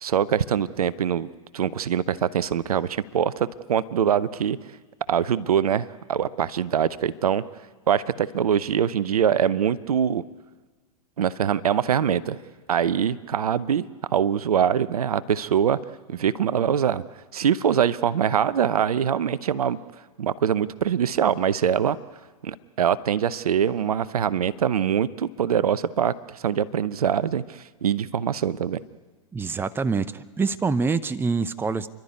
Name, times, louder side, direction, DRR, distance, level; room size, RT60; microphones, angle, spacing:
voice 1, 0.0-1.3 1.5-4.6 5.1-7.4 7.9-10.2 11.2-12.4 12.7-15.8 16.1-17.0 17.3-19.8 20.2-22.0 22.4-28.8, right 8 dB, 80° right, 16 dB, 0.8 m, -23 dB
voice 2, 29.3-31.9, right 4 dB, 10° right, 14 dB, 0.7 m, -25 dB
30.0 x 12.0 x 9.6 m, 1.4 s
hypercardioid pair, 105°, 19 cm